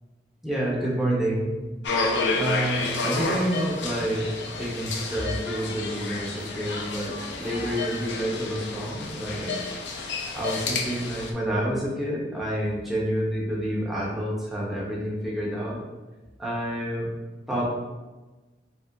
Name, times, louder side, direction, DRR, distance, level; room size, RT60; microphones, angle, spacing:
voice 1, 0.4-1.6 2.4-9.6 10.3-15.8 16.4-17.1 17.5-17.7, right 1 dB, ahead, -6 dB, 0.9 m, -28 dB
sound 1, 1.8-11.3, left 3 dB, 70° left, 0.5 m, -30 dB
5.4 x 2.0 x 3.7 m, 1.2 s
head